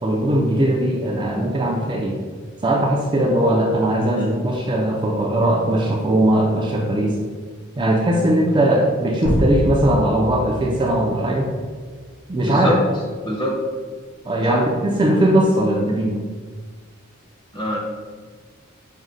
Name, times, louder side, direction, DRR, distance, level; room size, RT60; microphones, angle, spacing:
voice 1, 0.0-2.2 2.6-7.2 7.8-11.5 12.3-12.8 14.2-16.2, right 1 dB, 20° right, -2 dB, 0.4 m, -19 dB
sound 1, 9.3-11.8, equal, 80° left, 0.9 m, -25 dB
voice 2, 12.5-12.8 13.2-13.5 14.5-14.6 17.5-17.8, left 1 dB, 20° left, -3 dB, 0.9 m, -24 dB
6.1 x 2.1 x 3.9 m, 1.5 s
head